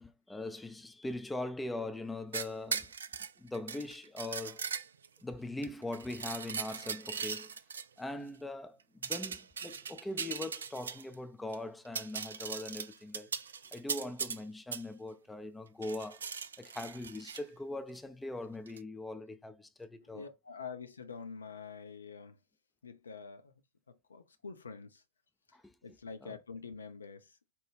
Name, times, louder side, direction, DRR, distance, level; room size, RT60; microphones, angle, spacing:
voice 1, 0.0-2.9 3.4-4.7 5.2-7.5 8.0-13.3 13.7-16.2 16.6-20.3 25.5-26.0 26.2-26.4, left 2 dB, 5° left, 0.4 m, -41 dB
sound 1, 2.3-5.2 5.6-7.8 9.0-11.1 11.5-11.6 11.8-14.4 14.7-14.8 15.8-17.4 18.7-18.8, right 6 dB, 70° right, 0.3 m, -39 dB
voice 2, 20.0-22.4 22.8-23.5 24.1-25.0 25.8-27.5, left 5 dB, 75° left, 0.5 m, -46 dB
4.5 x 2.2 x 3.3 m
figure-of-eight pair, 90°, 0 cm